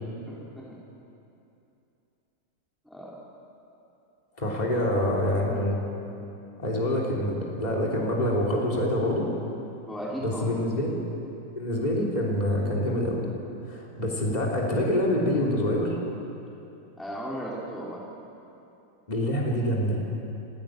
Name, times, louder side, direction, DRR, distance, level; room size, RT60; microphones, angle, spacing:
voice 1, 0.3-0.8 2.9-3.2 4.7-5.0 9.9-10.5 17.0-18.0, equal, ahead, -5 dB, 3.7 m, -36 dB
voice 2, 4.4-5.8 6.6-9.3 10.2-11.0 11.5-13.2 13.7-16.0 19.1-20.0, left 1 dB, 20° left, -3 dB, 3.5 m, -26 dB
29.0 x 15.5 x 9.2 m, 2.8 s
omnidirectional pair, 1.9 m